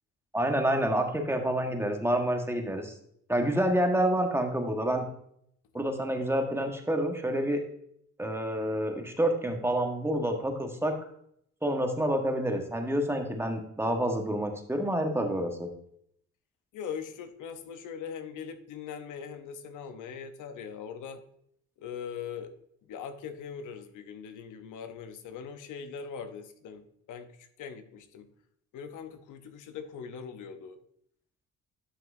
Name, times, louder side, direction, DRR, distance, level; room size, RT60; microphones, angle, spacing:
voice 1, 0.3-2.9 3.3-5.0 5.7-7.6 8.2-11.0 11.6-15.7, right 1 dB, 10° right, 3 dB, 1.4 m, -28 dB
voice 2, 16.7-21.2 21.8-22.5 22.8-28.3 28.7-30.8, left 7 dB, 85° left, 9 dB, 0.9 m, -41 dB
11.5 x 5.8 x 2.7 m, 0.69 s
cardioid pair, 90°, 30 cm